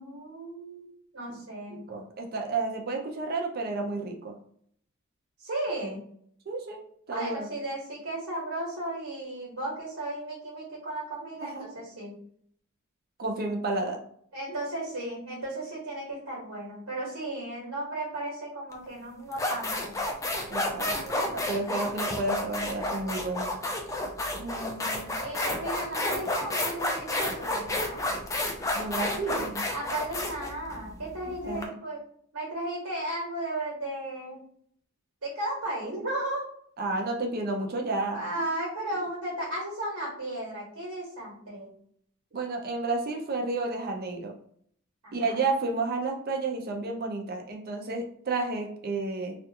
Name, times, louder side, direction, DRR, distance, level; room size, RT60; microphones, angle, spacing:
voice 1, 0.0-1.8 5.4-6.0 7.1-12.1 14.3-20.0 25.2-28.2 29.7-32.0 32.3-34.4 35.2-36.5 38.1-41.7 45.0-45.4, right 1 dB, 90° right, -4 dB, 1.1 m, -35 dB
voice 2, 1.7-4.4 6.5-6.8 7.1-7.5 11.2-11.7 13.2-14.0 14.5-14.6 20.5-23.5 24.4-25.1 28.7-29.6 31.3-31.7 36.8-38.5 42.3-44.3 45.1-49.4, right 3 dB, 45° right, 3 dB, 0.5 m, -31 dB
sound 1, 18.7-18.9 19.3-31.6, left 1 dB, 15° left, 0.3 m, -30 dB
2.5 x 2.3 x 2.8 m, 0.63 s
head